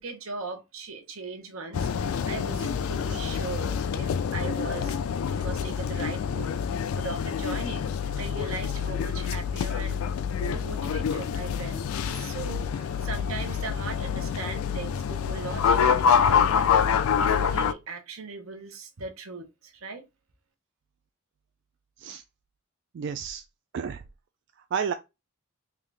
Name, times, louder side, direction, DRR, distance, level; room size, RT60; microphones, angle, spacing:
voice 1, 0.0-5.0 5.3-10.0 10.4-16.8 17.2-20.0, right 4 dB, 85° right, 0.9 m, -39 dB
sound 1, 1.7-17.7, left 7 dB, 85° left, 0.3 m, -26 dB
voice 2, 22.9-23.4 23.7-24.0 24.7-24.9, right 7 dB, 60° right, 0.3 m, -31 dB
3.7 x 2.4 x 3.3 m
head